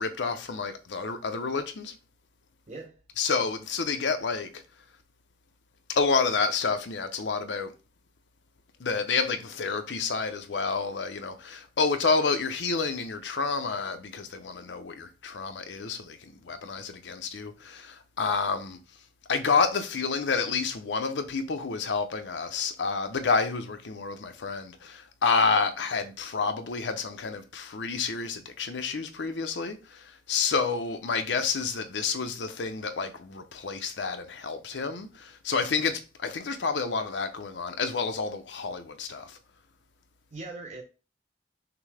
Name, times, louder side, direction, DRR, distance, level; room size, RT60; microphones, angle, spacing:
voice 1, 0.0-1.9 3.2-4.6 5.9-7.7 8.8-18.8 19.3-39.4, left 4 dB, 85° left, 0.6 m, -29 dB
voice 2, 2.7-3.0 35.8-36.0 40.3-40.8, right 3 dB, 40° right, 0.5 m, -41 dB
5.9 x 2.1 x 3.3 m
head